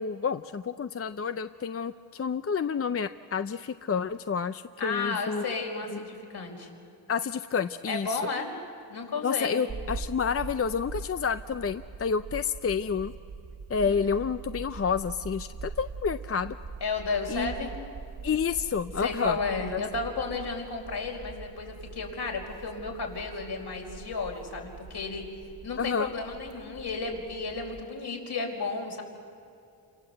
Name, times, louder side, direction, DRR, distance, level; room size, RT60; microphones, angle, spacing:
voice 1, 0.0-5.4 5.9-6.0 7.1-8.2 9.2-13.1 13.7-16.6 17.3-17.5 18.2-19.4 19.7-19.8 25.8-26.1, left 6 dB, 35° left, 11 dB, 0.5 m, -29 dB
voice 2, 4.8-6.7 7.9-8.5 8.9-9.6 13.8-14.2 16.8-17.7 19.0-25.3 25.6-29.0, left 4 dB, 70° left, 0 dB, 5.1 m, -33 dB
sound 1, 9.7-27.8, right 4 dB, 60° right, 1.9 m, -43 dB
28.5 x 26.0 x 7.8 m, 2.7 s
wide cardioid pair, 115°, 42 cm